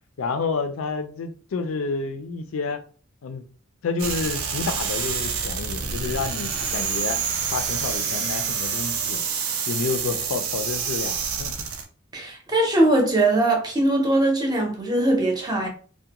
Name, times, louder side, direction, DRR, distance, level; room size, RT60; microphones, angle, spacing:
voice 1, 0.2-2.8 3.2-3.4 3.8-7.2 7.5-9.2 9.7-11.7, left 4 dB, 80° left, 0.4 m, -29 dB
sound 1, 4.0-11.9, right 6 dB, 90° right, 0.5 m, -27 dB
voice 2, 12.1-15.7, right 1 dB, 20° right, 0.6 m, -21 dB
2.4 x 2.1 x 2.8 m
head